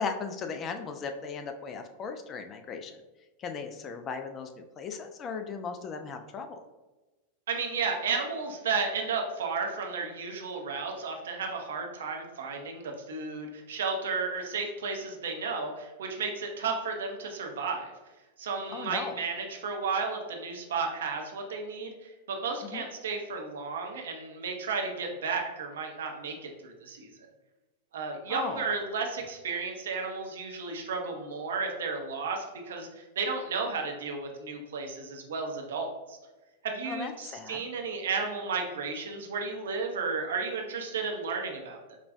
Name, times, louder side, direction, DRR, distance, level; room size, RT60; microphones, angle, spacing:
voice 1, 0.0-3.0 3.4-6.6 18.7-19.1 22.6-22.8 28.3-28.7 36.8-37.6, left 5 dB, 30° left, 6 dB, 0.3 m, -37 dB
voice 2, 7.5-17.9 18.4-27.1 27.9-36.2 36.6-42.0, right 4 dB, 60° right, 2 dB, 0.6 m, -33 dB
4.9 x 2.3 x 2.6 m, 1.1 s
figure-of-eight pair, 90°, 0 cm